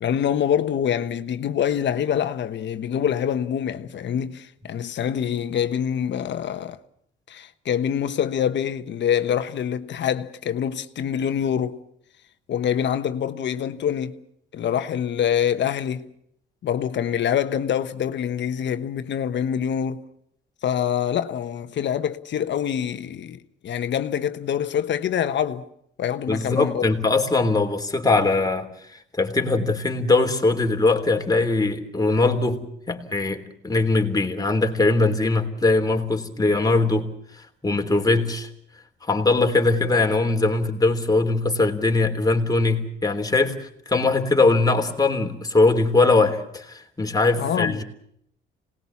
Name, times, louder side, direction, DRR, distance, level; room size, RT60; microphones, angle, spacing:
voice 1, 0.0-6.8 7.3-11.8 12.5-14.2 14.5-16.1 16.6-20.0 20.6-23.4 23.6-25.6 26.0-26.9 47.4-47.8, left 9 dB, 65° left, 1.3 m, -25 dB
voice 2, 26.3-38.5 39.0-47.8, left 3 dB, 20° left, 3.3 m, -21 dB
26.5 x 19.5 x 7.3 m
cardioid pair, 90°, 20 cm